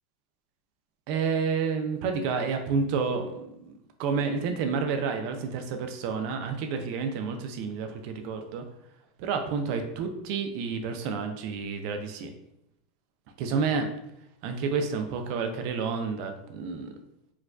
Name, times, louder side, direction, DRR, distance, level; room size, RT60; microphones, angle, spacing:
voice 1, 1.1-8.6 9.2-12.3 13.4-13.9 14.4-16.9, right 5 dB, 60° right, 6 dB, 0.4 m, -30 dB
4.6 x 2.2 x 2.3 m, 0.80 s
supercardioid pair, 130°, 0 cm